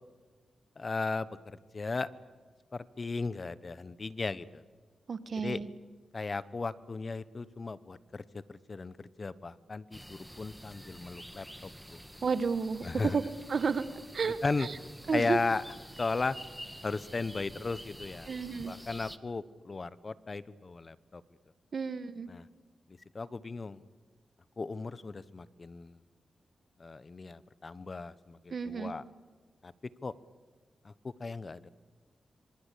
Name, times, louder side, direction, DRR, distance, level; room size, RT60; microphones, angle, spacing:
voice 1, 0.8-1.3 1.7-2.1 2.7-4.6 5.4-5.6 6.1-8.2 8.5-12.0 12.8-13.2 14.2-14.7 15.1-15.6 16.0-16.4 16.8-18.3 18.7-21.2 22.3-22.5 23.1-23.8 24.6-26.0 26.8-29.0 29.6-29.7 30.0-30.1 30.8-31.7, left 3 dB, 45° left, 16 dB, 1.1 m, -36 dB
voice 2, 5.1-5.7 12.2-13.8 14.1-14.7 15.1-15.4 18.3-18.7 21.7-22.3 28.5-28.9, right 5 dB, 60° right, 12 dB, 1.6 m, -32 dB
sound 1, 9.9-19.2, equal, ahead, 1.5 m, -48 dB
26.0 x 25.5 x 8.5 m, 1.4 s
cardioid pair, 60°, 0 cm